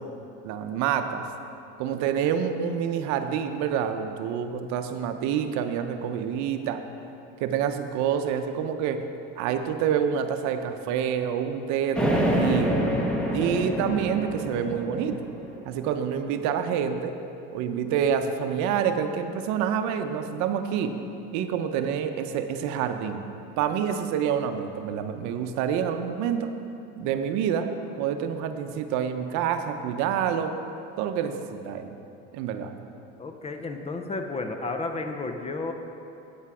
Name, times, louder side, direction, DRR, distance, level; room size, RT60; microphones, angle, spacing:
voice 1, 0.4-1.2 1.8-6.8 7.4-9.0 9.4-12.8 13.3-15.2 15.7-17.2 17.5-21.0 21.3-23.3 23.6-26.6 27.0-27.7 28.0-30.5 31.0-31.9 32.3-32.7, right 8 dB, 65° right, 7 dB, 0.7 m, -27 dB
sound 1, 11.9-15.8, equal, 5° left, 1.1 m, -26 dB
voice 2, 33.2-35.7, left 3 dB, 20° left, 5 dB, 0.6 m, -32 dB
8.5 x 8.0 x 4.9 m, 2.7 s
cardioid pair, 125°, 31 cm